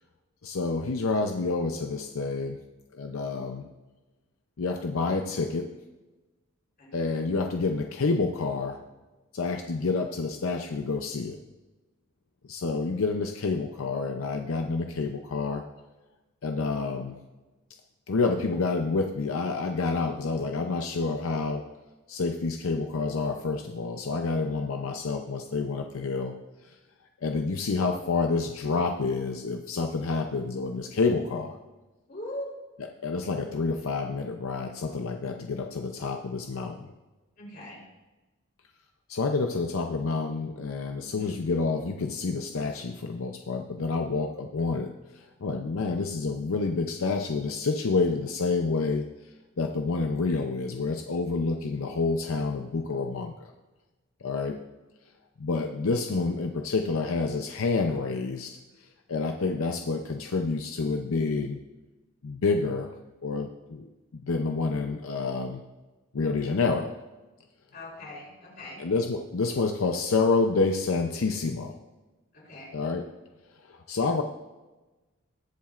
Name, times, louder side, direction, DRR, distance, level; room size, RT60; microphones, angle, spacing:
voice 1, 0.4-2.6 2.9-3.7 4.6-5.7 6.9-8.8 9.3-11.4 12.5-15.6 16.4-17.2 18.1-21.6 22.1-26.3 26.6-26.8 27.2-31.6 33.0-36.9 39.1-49.1 49.6-53.3 54.2-54.6 55.4-58.6 59.1-61.6 62.2-62.9 63.2-63.9 64.1-65.6 66.1-66.9 68.8-71.8 72.7-73.0 73.7-74.2, left 3 dB, 85° left, 4 dB, 0.6 m, -28 dB
voice 2, 32.1-32.5 37.4-37.8 41.0-41.4 67.7-68.8 72.3-72.7, left 1 dB, 45° left, -4 dB, 3.7 m, -41 dB
20.0 x 7.3 x 2.5 m, 1.1 s
head